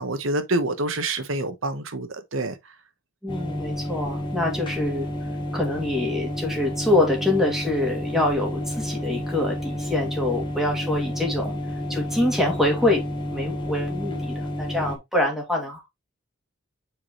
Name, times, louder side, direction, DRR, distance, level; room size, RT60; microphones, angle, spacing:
voice 1, 0.0-2.6, right 2 dB, 75° right, 1.2 m, -27 dB
voice 2, 3.2-5.1 5.5-11.5 11.9-13.0 13.3-15.9, left 1 dB, ahead, 2.6 m, -25 dB
sound 1, 3.3-15.0, equal, 25° left, 1.4 m, -30 dB
7.0 x 4.8 x 3.1 m
head